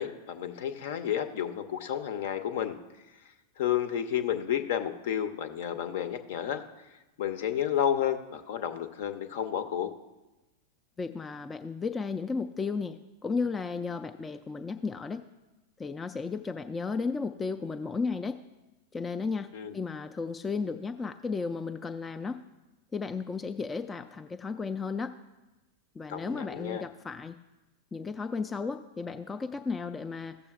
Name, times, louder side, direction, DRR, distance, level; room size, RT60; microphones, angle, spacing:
voice 1, 0.0-2.8 3.6-6.6 7.2-9.9 19.5-19.8 26.1-26.9, left 10 dB, 55° left, 10 dB, 0.6 m, -31 dB
voice 2, 11.0-15.2 15.8-18.4 18.9-22.4 22.9-25.1 26.0-27.4 27.9-30.4, left 4 dB, 15° left, 7 dB, 0.3 m, -34 dB
15.0 x 6.9 x 2.4 m, 1.1 s
figure-of-eight pair, 90°, 0 cm